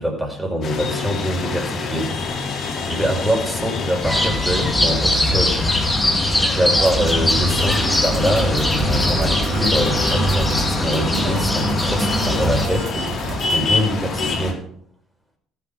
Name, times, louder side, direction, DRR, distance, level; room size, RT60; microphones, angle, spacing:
voice 1, 0.0-2.4 2.9-5.6 6.5-14.6, equal, 10° right, 1 dB, 5.1 m, -24 dB
sound 1, 0.6-14.5, left 4 dB, 55° left, 3.0 m, -27 dB
sound 2, 4.0-12.7, left 1 dB, 10° left, 2.6 m, -21 dB
sound 3, 6.8-13.7, right 4 dB, 65° right, 2.7 m, -31 dB
14.0 x 7.3 x 5.1 m, 0.65 s
supercardioid pair, 70°, 0 cm